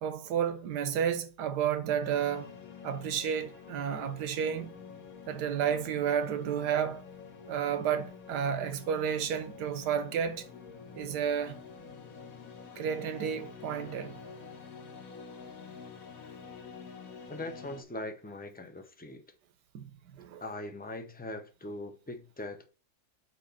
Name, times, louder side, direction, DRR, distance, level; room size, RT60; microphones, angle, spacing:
voice 1, 0.0-2.5 2.8-4.7 5.3-7.0 7.5-10.5 10.9-11.6 12.8-14.2 19.7-19.9 20.2-20.4, right 8 dB, 85° right, 1.5 m, -31 dB
sound 1, 2.0-17.8, left 6 dB, 60° left, 1.5 m, -48 dB
voice 2, 17.3-19.2 20.4-22.7, left 2 dB, 15° left, 0.3 m, -41 dB
8.6 x 2.9 x 5.6 m
omnidirectional pair, 1.7 m